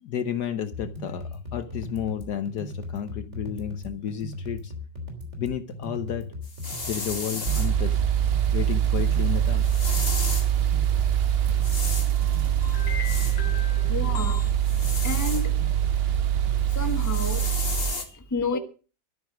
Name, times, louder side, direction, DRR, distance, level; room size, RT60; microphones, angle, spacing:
voice 1, 0.0-4.7 5.4-6.3 6.9-8.0 8.5-9.7 10.7-10.8 12.1-14.5, left 9 dB, 65° left, 1.3 m, -32 dB
sound 1, 0.7-16.7, left 2 dB, 35° right, 3.5 m, -38 dB
sound 2, 6.4-7.7 9.6-10.5 11.6-12.1 13.0-13.4 14.6-15.4 16.7-18.0, left 3 dB, 30° left, 2.4 m, -33 dB
sound 3, 7.5-17.9, right 11 dB, 75° right, 0.5 m, -24 dB
voice 2, 13.9-14.4 15.0-15.5 16.7-17.5 17.8-18.6, left 3 dB, 10° left, 1.2 m, -31 dB
13.0 x 9.8 x 6.1 m
omnidirectional pair, 2.1 m